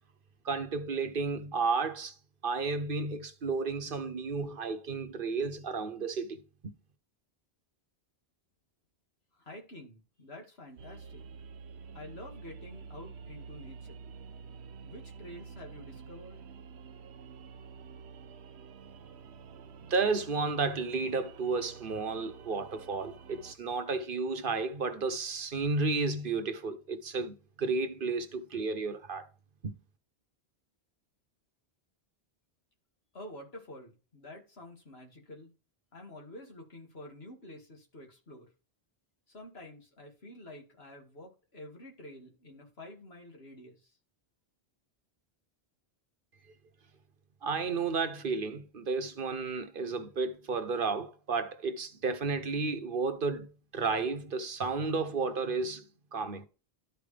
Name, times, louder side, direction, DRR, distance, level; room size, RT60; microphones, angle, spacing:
voice 1, 0.4-2.1 2.4-6.7 19.9-29.3 29.6-29.8 47.4-55.8 56.1-56.5, right 4 dB, 55° right, 1.0 m, -32 dB
voice 2, 9.3-11.2 11.9-14.0 14.8-16.4 33.1-35.5 35.9-38.5 39.3-43.9, left 1 dB, 70° left, 2.4 m, -49 dB
sound 1, 10.8-23.5, right 5 dB, 80° right, 0.9 m, -49 dB
12.5 x 4.6 x 3.3 m
omnidirectional pair, 1.1 m